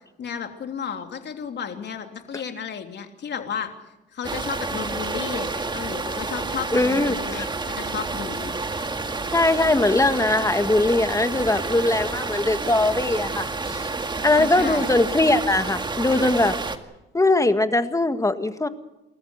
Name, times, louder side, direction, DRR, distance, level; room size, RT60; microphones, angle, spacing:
voice 1, 0.2-3.7 4.1-8.5 14.4-14.9, left 7 dB, 60° left, 5 dB, 3.2 m, -33 dB
sound 1, 4.2-16.8, right 3 dB, 25° right, 2.0 m, -29 dB
voice 2, 6.7-7.5 9.3-13.9 14.2-16.5 17.1-18.7, left 2 dB, 15° left, 9 dB, 1.7 m, -21 dB
29.5 x 14.0 x 8.0 m, 0.96 s
cardioid pair, 90°, 20 cm